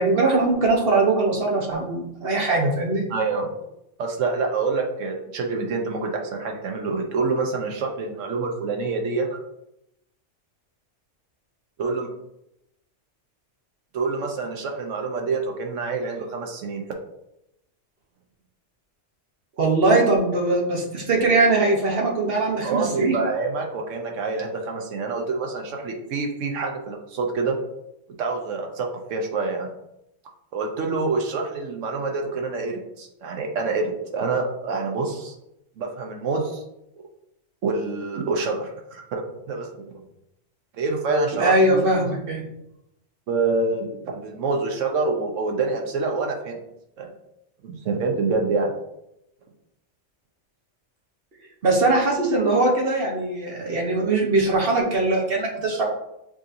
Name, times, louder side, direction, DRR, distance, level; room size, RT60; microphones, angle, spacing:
voice 1, 0.0-3.0 19.6-23.2 41.3-42.4 51.6-55.8, right 2 dB, 55° right, -1 dB, 1.1 m, -21 dB
voice 2, 3.1-3.4 4.0-9.4 11.8-12.1 13.9-16.8 22.6-27.6 28.2-29.7 30.5-35.4 35.8-36.6 37.6-39.2 39.5-39.9 40.8-41.8 43.3-46.6 47.0-47.1 47.6-48.7, right 3 dB, 90° right, 1 dB, 1.2 m, -26 dB
7.3 x 2.8 x 2.6 m, 0.85 s
omnidirectional pair, 1.3 m